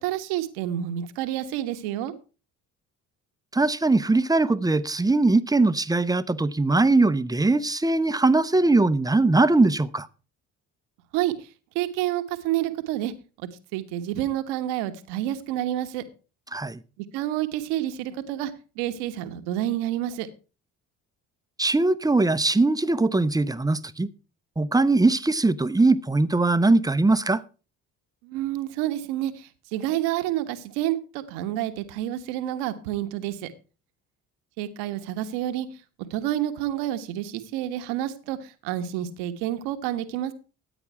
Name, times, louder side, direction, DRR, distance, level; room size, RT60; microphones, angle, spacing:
voice 1, 0.0-2.1 11.1-11.5 11.7-13.1 13.4-16.0 17.0-20.3 28.2-33.5 34.6-35.7 36.1-40.3, right 13 dB, 75° right, 1.3 m, -29 dB
voice 2, 3.5-10.1 16.5-16.8 21.6-24.1 24.6-27.4, right 2 dB, 10° right, 0.8 m, -21 dB
14.0 x 9.0 x 4.7 m
hypercardioid pair, 50°, 40 cm